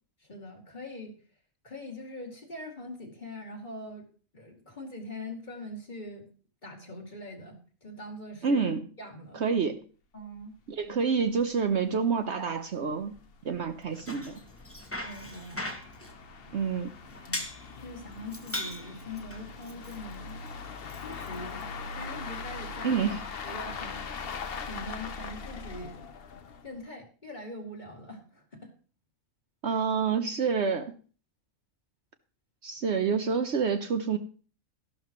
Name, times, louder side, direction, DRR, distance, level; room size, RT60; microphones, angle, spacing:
voice 1, 0.2-1.1 1.6-4.1 4.3-6.3 6.6-8.7 9.0-9.4 10.1-10.5 15.0-15.8 17.3-17.4 17.8-20.4 20.9-23.1 23.4-24.0 24.6-26.1 26.6-28.7, left 1 dB, 35° left, 1 dB, 2.5 m, -42 dB
voice 2, 8.4-8.9 9.3-9.8 10.7-13.2 13.4-14.4 16.5-16.9 22.8-23.2 29.6-30.9 32.6-34.2, right 5 dB, 60° right, 8 dB, 1.0 m, -28 dB
sound 1, 10.4-10.5 10.7-10.8 11.3-11.4 11.7-11.8 12.4-26.8, left 5 dB, 50° left, 1.0 m, -41 dB
Bicycle, 13.8-22.1, left 1 dB, 10° left, 1.4 m, -42 dB
13.5 x 11.5 x 3.1 m, 0.39 s
omnidirectional pair, 1.4 m